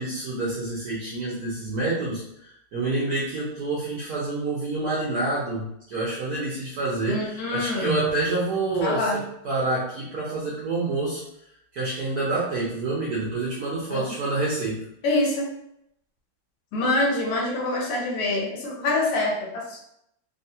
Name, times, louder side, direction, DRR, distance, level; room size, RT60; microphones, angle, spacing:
voice 1, 0.0-2.2 2.7-11.2 11.7-14.9, right 2 dB, 65° right, -6 dB, 0.9 m, -27 dB
voice 2, 7.1-8.1 8.7-9.2 13.9-14.1 15.0-15.5 16.7-19.8, left 2 dB, 75° left, -1 dB, 1.5 m, -25 dB
3.5 x 2.2 x 2.7 m, 0.75 s
omnidirectional pair, 2.4 m